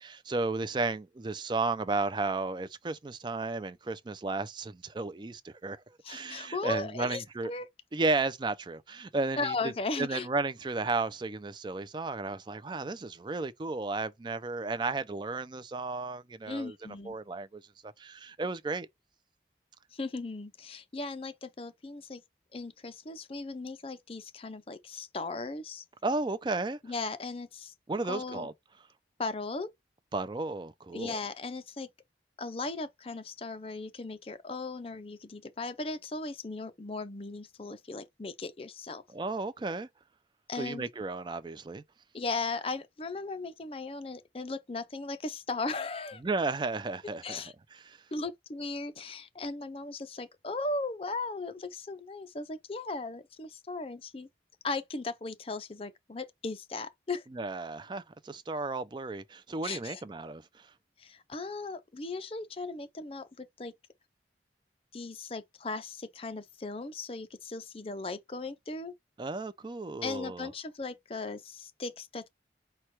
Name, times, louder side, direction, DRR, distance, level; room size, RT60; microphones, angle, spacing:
voice 1, 0.0-5.8 6.1-7.5 7.9-16.8 17.0-18.9 26.0-26.8 27.9-28.5 30.1-31.2 39.1-39.9 40.6-41.8 46.2-47.4 47.7-48.0 57.3-60.7 69.2-70.5, right 3 dB, 25° right, 0.4 m, -34 dB
voice 2, 6.0-7.7 9.4-10.3 16.5-17.2 19.9-22.2 22.5-25.8 26.8-27.7 28.1-28.5 29.2-29.7 30.9-31.9 32.4-39.0 40.5-40.9 42.1-46.2 47.2-47.5 48.1-54.3 54.6-57.2 59.6-60.0 61.0-63.7 64.9-68.9 70.0-72.3, left 3 dB, 30° left, 0.5 m, -37 dB
4.4 x 2.2 x 4.6 m
head